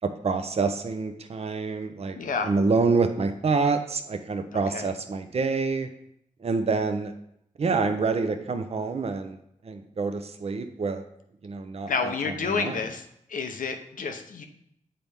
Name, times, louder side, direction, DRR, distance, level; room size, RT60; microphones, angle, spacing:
voice 1, 0.0-2.2 2.4-5.9 6.4-7.1 7.6-9.4 9.6-11.0 11.4-11.9 12.2-12.8, right 4 dB, 50° right, 7 dB, 0.6 m, -27 dB
voice 2, 2.2-2.5 4.5-4.9 11.9-14.5, left 5 dB, 80° left, 6 dB, 0.7 m, -30 dB
7.6 x 4.2 x 3.4 m, 0.76 s
cardioid pair, 65°, 14 cm